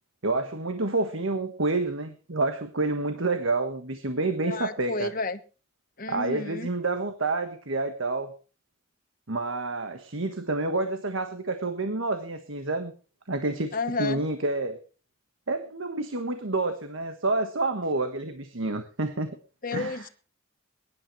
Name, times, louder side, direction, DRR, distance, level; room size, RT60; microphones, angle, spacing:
voice 1, 0.2-5.1 6.1-8.3 9.3-12.9 13.3-14.8 15.5-19.4 19.7-20.0, right 2 dB, 70° right, 7 dB, 1.4 m, -28 dB
voice 2, 4.4-5.4 6.0-6.7 13.7-14.2 19.6-20.1, left 3 dB, 40° left, 11 dB, 1.2 m, -31 dB
23.0 x 11.0 x 3.2 m, 0.35 s
head